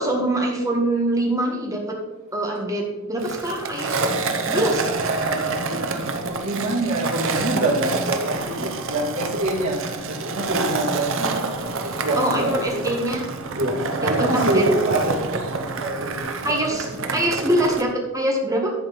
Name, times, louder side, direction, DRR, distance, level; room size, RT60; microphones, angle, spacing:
voice 1, 0.0-2.0 2.3-4.1 4.4-4.8 12.2-13.2 14.0-14.6 16.4-18.7, right 1 dB, 15° right, 0 dB, 1.8 m, -24 dB
Skateboard, 3.2-17.8, right 3 dB, 65° right, 0.9 m, -27 dB
voice 2, 4.8-9.8 10.1-12.8 13.5-13.8 14.1-16.6 16.9-17.3, right 1 dB, 90° right, -4 dB, 2.8 m, -26 dB
11.0 x 4.4 x 6.9 m, 1.1 s
head